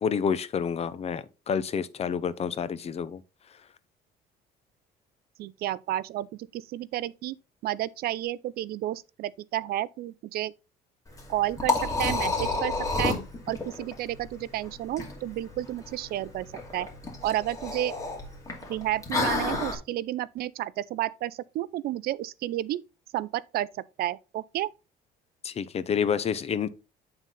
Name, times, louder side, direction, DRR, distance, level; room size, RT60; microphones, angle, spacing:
voice 1, 0.0-3.2 25.4-26.7, left 7 dB, 40° left, 0.6 m, -28 dB
voice 2, 5.4-7.4 7.6-10.5 11.3-13.1 13.5-16.5 16.7-16.9 17.2-17.9 18.7-22.8 23.1-23.7 24.0-24.7, right 14 dB, 65° right, 0.4 m, -31 dB
Liquid, 11.1-19.8, left 3 dB, 20° left, 2.4 m, -31 dB
9.1 x 3.9 x 4.0 m
cardioid pair, 110°, 17 cm